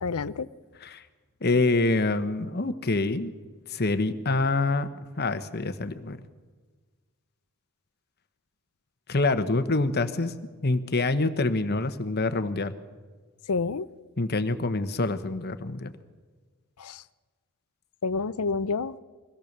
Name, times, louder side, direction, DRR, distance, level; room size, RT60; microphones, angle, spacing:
voice 1, 0.0-0.5 13.5-13.9 16.8-17.0 18.0-19.0, left 4 dB, 80° left, 16 dB, 0.6 m, -28 dB
voice 2, 1.4-3.3 3.7-4.9 5.2-6.2 9.1-10.3 10.6-12.7 14.2-15.9, left 2 dB, 45° left, 11 dB, 1.1 m, -26 dB
22.5 x 17.0 x 6.7 m, 1.4 s
head